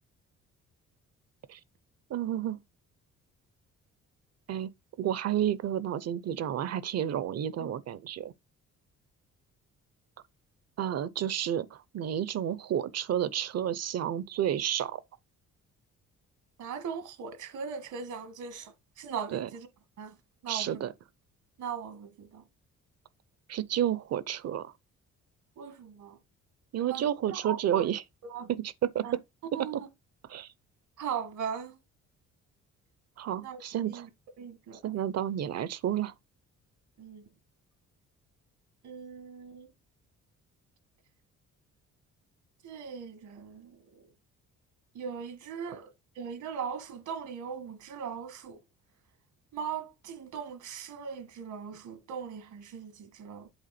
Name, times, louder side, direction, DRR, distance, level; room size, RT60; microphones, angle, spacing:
voice 1, 2.1-2.6 4.5-4.7 5.0-8.3 10.8-15.0 19.3-19.5 20.5-20.9 23.5-24.7 26.7-28.0 28.5-29.2 29.7-29.8 30.3-30.5 33.2-34.1 34.8-36.1 45.7-45.8, right 10 dB, 55° right, 0.7 m, -31 dB
voice 2, 16.6-19.7 20.0-20.1 20.4-20.9 21.6-22.4 25.6-26.2 26.9-27.8 28.2-28.5 29.0-29.2 29.5-29.9 31.0-31.8 33.4-34.1 34.4-34.9 37.0-37.2 38.8-39.7 42.6-44.1 44.9-45.9 46.2-48.6 49.5-53.5, right 7 dB, 75° right, 1.5 m, -39 dB
8.1 x 3.5 x 4.2 m
cardioid pair, 90°, 30 cm